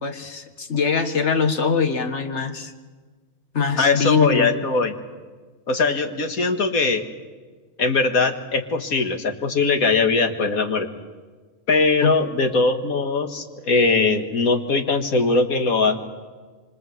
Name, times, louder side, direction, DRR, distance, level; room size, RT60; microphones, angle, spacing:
voice 1, 0.0-2.7 3.5-4.5 12.0-12.1, left 5 dB, 55° left, 8 dB, 1.9 m, -22 dB
voice 2, 3.8-4.9 5.7-7.1 7.8-10.9 11.7-16.0, left 3 dB, 85° left, 7 dB, 2.2 m, -20 dB
26.5 x 25.0 x 7.8 m, 1.4 s
omnidirectional pair, 1.5 m